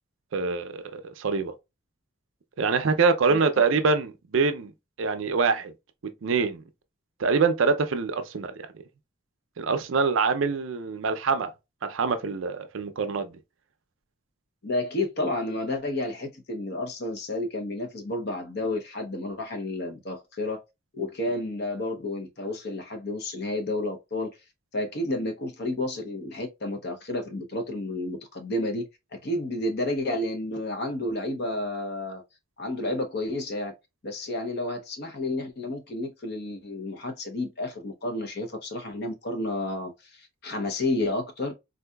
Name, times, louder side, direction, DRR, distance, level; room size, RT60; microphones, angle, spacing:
voice 1, 0.3-1.5 2.6-4.7 5.0-5.7 6.2-6.6 7.2-8.7 9.6-11.5 11.9-13.3, right 4 dB, 65° right, 0.5 m, -25 dB
voice 2, 14.6-20.6 20.9-24.4 24.7-32.2 32.6-33.7 34.0-41.5, left 2 dB, 50° left, 0.7 m, -31 dB
3.8 x 2.7 x 2.2 m
head